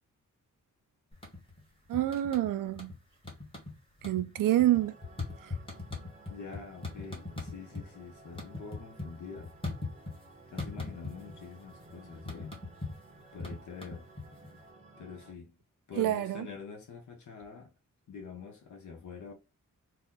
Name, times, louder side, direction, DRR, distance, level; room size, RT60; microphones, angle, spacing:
sound 1, 1.1-1.6 1.9-3.0 3.2-3.7 4.0-7.9 8.2-10.3 10.6-11.4 11.7-14.6, left 3 dB, 15° left, 1.1 m, -39 dB
voice 1, 1.9-2.9 4.0-5.0 5.4-5.5 16.0-16.5, right 13 dB, 90° right, 0.5 m, -27 dB
sound 2, 4.5-15.3, right 2 dB, 25° right, 0.6 m, -55 dB
voice 2, 6.3-9.5 10.5-12.6 13.3-14.1 15.0-15.5 15.9-17.7 18.1-19.3, left 5 dB, 70° left, 0.7 m, -46 dB
2.8 x 2.2 x 3.7 m
wide cardioid pair, 175°, 31 cm